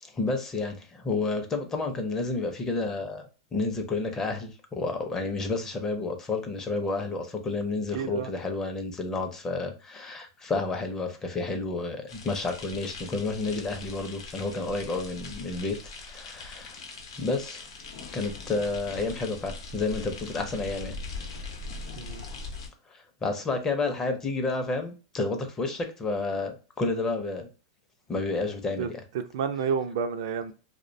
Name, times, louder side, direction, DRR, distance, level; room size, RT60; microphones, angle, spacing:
voice 1, 0.0-3.2 3.5-16.8 17.2-17.7 18.1-20.9 22.9-27.5 28.1-29.0, left 3 dB, 20° left, 0.5 m, -30 dB
voice 2, 7.9-8.3 22.0-22.2 28.8-28.9 29.3-30.5, right 6 dB, 70° right, 0.3 m, -30 dB
sound 1, 12.1-22.7, left 3 dB, 85° left, 0.7 m, -41 dB
2.5 x 2.1 x 2.5 m
supercardioid pair, 130°, 3 cm